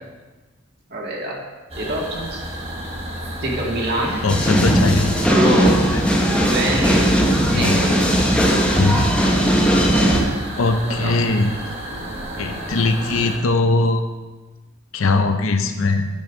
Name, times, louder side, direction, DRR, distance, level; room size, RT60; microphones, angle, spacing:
voice 1, 0.9-1.4 1.8-2.4 3.4-4.2 5.3-5.9 6.3-7.2 7.5-8.1 10.8-11.1, right 1 dB, 50° right, -2 dB, 1.7 m, -24 dB
sound 1, 1.7-13.4, right 1 dB, 30° right, 1.5 m, -32 dB
voice 2, 4.2-5.1 7.5-7.8 8.7-9.1 10.6-11.5 12.4-14.0 14.9-16.1, left 3 dB, 75° left, 6 dB, 0.6 m, -20 dB
sound 2, 4.3-10.2, equal, 5° left, 0.9 m, -18 dB
8.6 x 5.4 x 5.1 m, 1.2 s
head